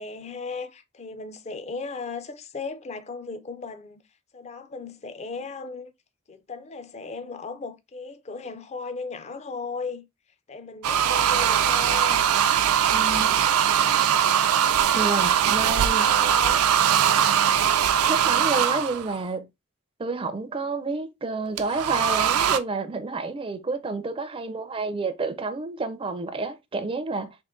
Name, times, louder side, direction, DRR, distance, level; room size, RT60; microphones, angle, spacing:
voice 1, 0.0-4.0 4.3-5.9 6.3-10.1 10.5-12.3 15.6-16.7, left 4 dB, 30° left, 0.4 m, -36 dB
sound 1, 10.8-19.2 21.6-22.6, right 9 dB, 85° right, 0.4 m, -21 dB
voice 2, 12.9-13.4 14.9-16.1 18.0-19.5 20.0-27.4, right 3 dB, 25° right, 0.4 m, -29 dB
3.7 x 2.5 x 3.6 m
head